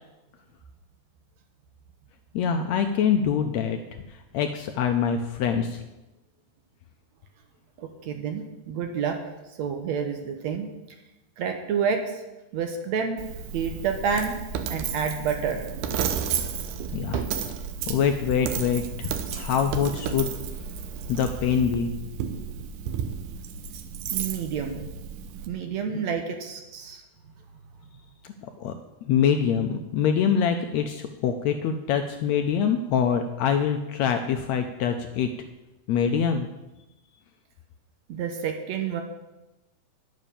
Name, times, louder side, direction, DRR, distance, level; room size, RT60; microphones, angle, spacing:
voice 1, 2.3-3.8 4.3-5.8 16.9-17.2 17.9-20.3 21.1-21.9 25.9-26.0 28.6-28.7 29.0-35.3 35.9-36.5, left 7 dB, 75° left, 6 dB, 1.6 m, -24 dB
voice 2, 7.8-9.2 9.6-10.7 11.4-12.2 12.5-13.2 13.5-14.4 14.7-16.0 24.1-24.8 25.5-27.0 38.1-39.0, right 6 dB, 70° right, 5 dB, 2.0 m, -29 dB
Coin (dropping), 13.2-25.5, right 7 dB, 85° right, 2.4 m, -32 dB
10.5 x 7.4 x 6.9 m, 1.0 s
omnidirectional pair, 3.7 m